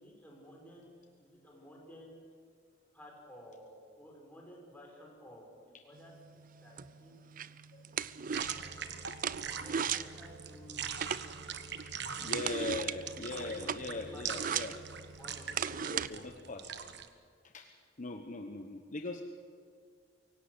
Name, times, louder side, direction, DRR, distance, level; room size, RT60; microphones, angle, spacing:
voice 1, 0.0-2.4 2.9-7.2 8.4-8.9 9.3-10.9 11.2-13.2 13.4-14.4 15.2-16.9, equal, 10° left, -1 dB, 5.6 m, -55 dB
sound 1, 5.9-16.1, right 8 dB, 45° right, 0.5 m, -39 dB
sound 2, 8.3-17.1, right 7 dB, 65° right, 1.3 m, -42 dB
voice 2, 12.2-14.8 15.8-16.7 17.4-17.7 18.0-19.2, left 2 dB, 45° left, 5 dB, 1.1 m, -40 dB
24.0 x 17.5 x 8.0 m, 2.1 s
head